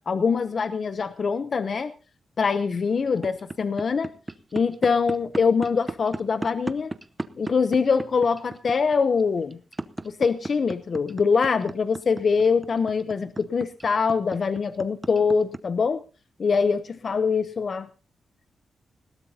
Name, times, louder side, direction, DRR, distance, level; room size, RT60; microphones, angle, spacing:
voice 1, 0.1-1.9 2.4-4.1 4.5-6.9 7.4-9.6 10.0-16.0 16.4-17.9, left 5 dB, 45° left, 11 dB, 0.6 m, -23 dB
sound 1, 3.2-15.6, right 2 dB, 15° right, 0.7 m, -34 dB
20.0 x 17.0 x 2.8 m, 0.36 s
wide cardioid pair, 140°, 0 cm